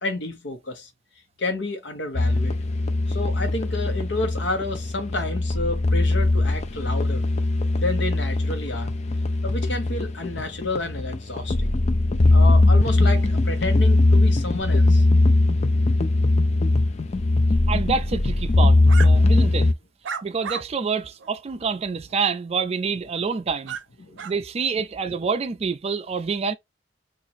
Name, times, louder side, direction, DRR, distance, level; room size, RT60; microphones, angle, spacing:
voice 1, 0.0-0.9 1.4-2.6 3.1-7.2 7.8-8.9 9.4-11.8 12.3-15.0 24.0-24.3, left 2 dB, 80° left, 1.0 m, -30 dB
sound 1, 2.1-19.7, left 2 dB, 35° left, 0.5 m, -20 dB
voice 2, 17.7-19.7 20.2-23.8 24.2-26.5, right 5 dB, 35° right, 0.4 m, -27 dB
sound 2, 18.9-19.1 20.0-20.6 21.2-21.3 23.7-23.8 24.2-24.3, right 7 dB, 90° right, 0.5 m, -32 dB
2.9 x 2.5 x 4.1 m
head